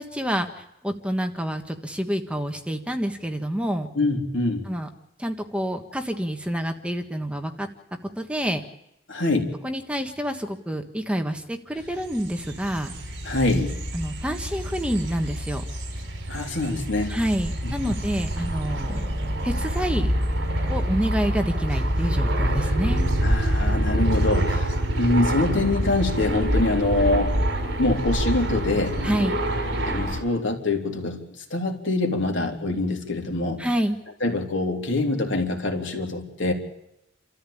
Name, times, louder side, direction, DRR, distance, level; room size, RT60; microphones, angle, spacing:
voice 1, 0.0-3.9 4.7-4.9 5.2-7.7 8.2-8.6 9.6-12.9 13.9-15.7 17.1-19.0 19.4-20.1 20.7-23.1 29.0-29.4 33.6-34.0, equal, 5° right, 5 dB, 1.5 m, -28 dB
voice 2, 4.0-4.6 9.1-9.6 13.2-13.7 16.3-17.2 17.6-17.9 23.2-27.3 27.8-29.0 29.8-33.6 34.2-36.5, left 2 dB, 70° left, 3 dB, 3.5 m, -25 dB
sound 1, 11.9-30.2, right 1 dB, 65° right, 4.6 m, -26 dB
29.5 x 14.0 x 8.6 m, 0.85 s
head